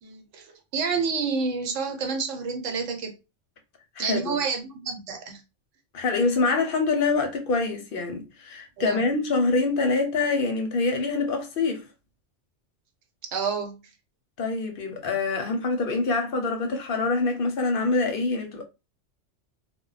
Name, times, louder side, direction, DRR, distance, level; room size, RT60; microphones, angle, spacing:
voice 1, 0.0-3.2 4.0-5.4 8.8-9.1 13.3-13.8, right 5 dB, 85° right, 1.1 m, -29 dB
voice 2, 4.0-4.4 5.9-11.8 14.4-18.6, left 3 dB, 55° left, 0.7 m, -25 dB
2.2 x 2.1 x 3.8 m
omnidirectional pair, 1.2 m